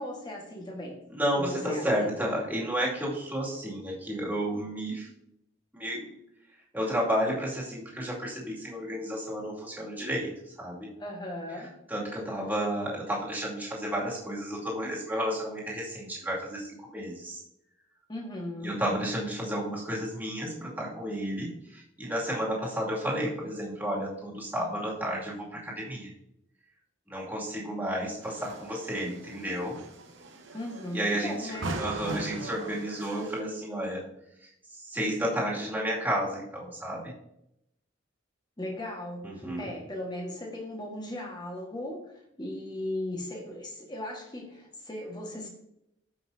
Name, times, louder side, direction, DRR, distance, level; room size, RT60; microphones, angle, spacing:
voice 1, 0.0-1.0 1.3-2.1 11.0-11.7 18.1-18.8 30.5-31.8 38.6-45.5, left 1 dB, 20° left, 1 dB, 1.6 m, -37 dB
voice 2, 1.1-5.1 5.7-6.1 6.7-10.3 10.6-10.9 11.9-17.4 18.6-26.1 27.1-29.8 30.9-34.0 34.4-37.1 39.2-39.7, equal, 10° right, -4 dB, 2.4 m, -32 dB
sound 1, 28.2-33.4, right 2 dB, 75° right, 1.0 m, -40 dB
14.0 x 5.7 x 2.8 m, 0.80 s
head